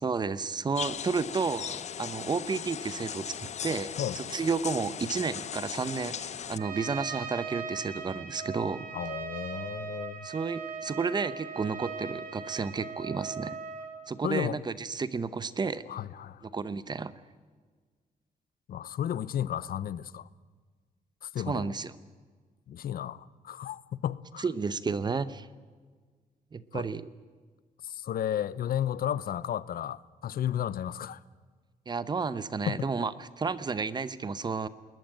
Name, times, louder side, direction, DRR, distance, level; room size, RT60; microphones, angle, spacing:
voice 1, 0.0-8.9 10.2-13.6 14.1-15.8 16.4-17.1 21.4-21.9 24.4-25.5 26.5-27.1 31.9-34.7, right 4 dB, 30° right, 0.8 m, -32 dB
sound 1, 0.8-6.6, left 8 dB, 50° left, 0.7 m, -38 dB
Trumpet, 6.6-13.9, right 6 dB, 65° right, 3.2 m, -39 dB
voice 2, 8.9-10.3 14.2-14.6 15.9-16.5 18.7-20.3 21.2-21.7 22.7-24.5 26.7-26.8 27.8-31.2 32.7-32.9, left 10 dB, 80° left, 0.8 m, -33 dB
21.0 x 20.5 x 9.0 m
wide cardioid pair, 175°, 15 cm